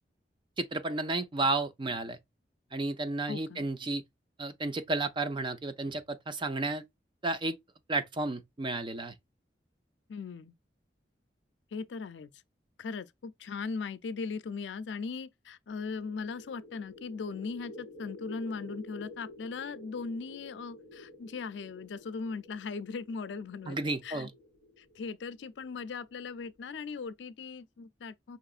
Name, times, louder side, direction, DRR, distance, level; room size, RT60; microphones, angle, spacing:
voice 1, 0.6-2.2 2.7-4.0 4.4-6.8 7.2-7.6 7.9-9.1 23.7-24.3, right 2 dB, 30° right, 0.5 m, -32 dB
voice 2, 3.3-3.7 10.1-10.5 11.7-12.3 12.8-23.8 24.0-24.3 24.8-28.4, left 4 dB, 90° left, 0.4 m, -39 dB
sound 1, 15.7-27.2, left 1 dB, 60° right, 2.2 m, -51 dB
4.9 x 3.0 x 2.4 m
head